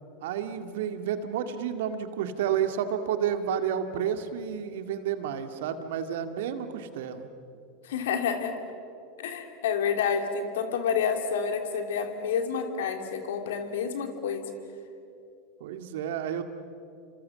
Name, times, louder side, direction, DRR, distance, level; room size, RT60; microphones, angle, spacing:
voice 1, 0.2-7.3 15.6-16.4, right 9 dB, 65° right, 8 dB, 2.0 m, -30 dB
voice 2, 7.8-8.5 9.2-14.4, left 6 dB, 70° left, 6 dB, 3.1 m, -29 dB
29.5 x 26.5 x 7.6 m, 2.6 s
hypercardioid pair, 90°, 0 cm